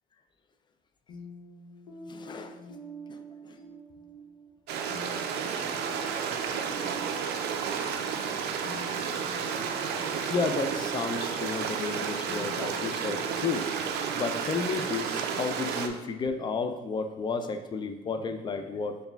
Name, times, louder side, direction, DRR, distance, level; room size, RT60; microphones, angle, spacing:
sound 1, 1.1-16.7, right 2 dB, 90° left, 0.9 m, -46 dB
voice 1, 2.1-2.6 3.1-3.2 3.4-3.6 9.0-9.1 10.3-13.7 14.1-19.0, left 4 dB, 25° left, 8 dB, 0.3 m, -32 dB
Stream, 4.7-15.9, right 6 dB, 75° right, 0.4 m, -32 dB
4.6 x 2.2 x 3.3 m, 1.1 s
cardioid pair, 110°, 17 cm